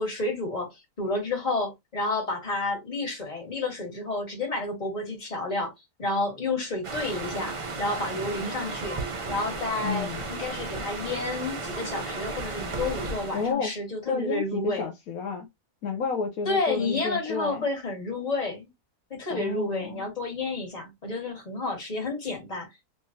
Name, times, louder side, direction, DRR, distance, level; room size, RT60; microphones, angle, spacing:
voice 1, 0.0-5.7 6.0-9.0 9.3-14.9 16.5-18.7 19.1-22.7, left 2 dB, 25° left, 1.7 m, -30 dB
sound 1, 6.8-13.5, right 3 dB, 40° right, 0.4 m, -34 dB
voice 2, 9.8-10.3 13.3-13.7 14.1-15.5 15.8-17.6 19.3-20.1, left 5 dB, 70° left, 1.2 m, -31 dB
3.4 x 3.1 x 2.7 m
omnidirectional pair, 1.6 m